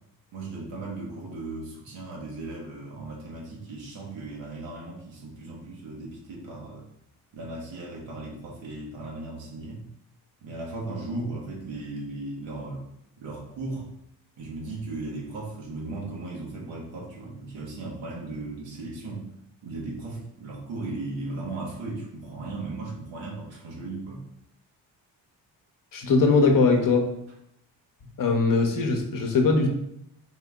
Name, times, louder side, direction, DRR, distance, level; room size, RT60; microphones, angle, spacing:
voice 1, 0.3-6.9 7.3-9.8 10.4-12.9 13.2-13.9 14.4-19.3 19.6-24.2, right 2 dB, 85° right, -2 dB, 1.4 m, -36 dB
voice 2, 25.9-27.0 28.2-29.7, left 4 dB, 45° left, 4 dB, 0.8 m, -21 dB
4.3 x 2.7 x 3.5 m, 0.77 s
cardioid pair, 75°, 44 cm